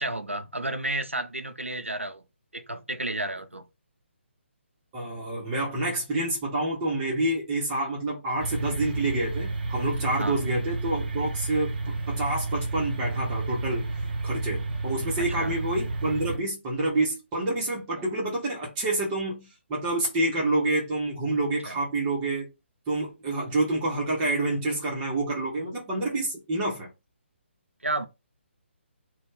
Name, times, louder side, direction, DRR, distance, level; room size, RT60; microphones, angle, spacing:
voice 1, 0.0-2.2 2.5-3.6 10.2-10.4 15.4-15.6 21.7-21.8 27.8-28.1, right 2 dB, 85° right, 0.5 m, -31 dB
voice 2, 4.9-13.9 14.2-22.5 22.9-26.9, right 2 dB, 20° right, 1.0 m, -28 dB
sound 1, 8.4-16.4, right 3 dB, 50° right, 0.7 m, -31 dB
2.6 x 2.3 x 3.7 m
figure-of-eight pair, 140°, 7 cm